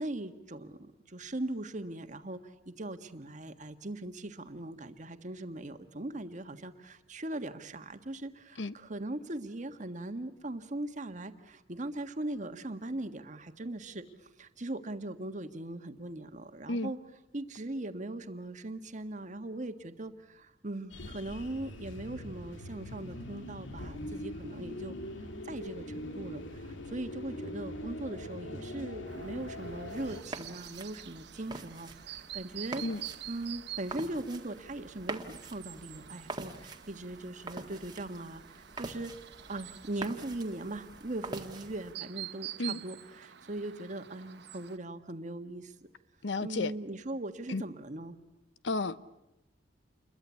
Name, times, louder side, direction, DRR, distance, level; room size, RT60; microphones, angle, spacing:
voice 1, 0.0-17.0 17.3-24.9 25.4-32.8 33.3-39.1 39.5-45.7 46.4-48.2, right 1 dB, 40° right, 1.6 m, -40 dB
sound 1, 20.9-30.2, left 1 dB, 90° left, 2.3 m, -42 dB
Chirp tweet, 29.1-44.8, right 12 dB, 65° right, 0.9 m, -47 dB
sound 2, 29.9-41.9, right 3 dB, 25° right, 1.7 m, -45 dB
voice 2, 46.2-46.7 47.5-47.6 48.6-49.0, left 2 dB, 70° left, 0.9 m, -32 dB
28.5 x 22.5 x 8.3 m
head